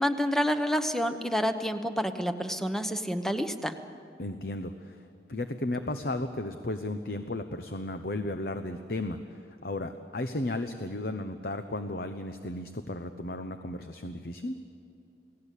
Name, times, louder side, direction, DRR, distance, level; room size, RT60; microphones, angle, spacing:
voice 1, 0.0-3.8, equal, ahead, 8 dB, 1.0 m, -28 dB
voice 2, 4.2-5.0 5.3-9.2 9.6-14.6, left 2 dB, 55° left, 8 dB, 0.9 m, -34 dB
29.5 x 18.0 x 8.3 m, 2.6 s
head